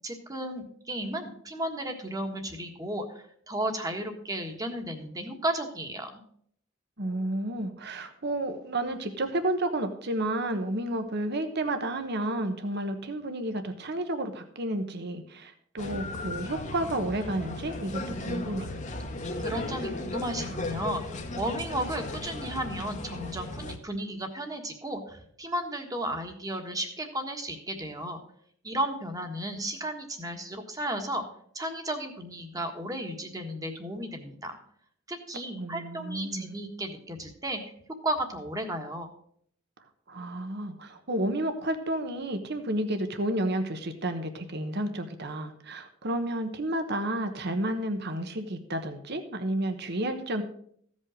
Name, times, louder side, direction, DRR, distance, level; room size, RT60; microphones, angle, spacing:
voice 1, 0.0-6.1 19.4-21.0 21.4-28.2 28.6-31.2 31.5-34.6 35.1-37.7 38.0-39.1, right 1 dB, 15° right, 4 dB, 1.5 m, -34 dB
voice 2, 7.0-18.7 35.6-36.6 40.1-50.4, right 1 dB, 55° right, 7 dB, 1.1 m, -31 dB
Amb Paros Naoussa ext, 15.8-23.8, left 2 dB, 35° left, 1.1 m, -36 dB
15.0 x 5.4 x 6.3 m, 0.63 s
head